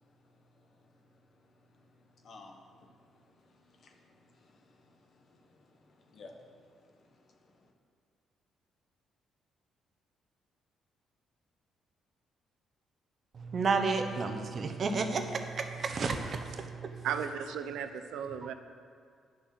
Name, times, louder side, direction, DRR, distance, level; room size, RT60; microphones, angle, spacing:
voice 1, 2.2-2.9 3.7-5.0 5.3-5.4 5.7-6.7 7.4-7.5, left 3 dB, 55° left, 3 dB, 1.4 m, -55 dB
voice 2, 13.4-16.9, right 4 dB, 50° right, 6 dB, 1.0 m, -31 dB
voice 3, 17.0-18.5, right 8 dB, 85° right, 8 dB, 0.6 m, -35 dB
10.0 x 6.5 x 6.2 m, 2.2 s
cardioid pair, 90°, 0 cm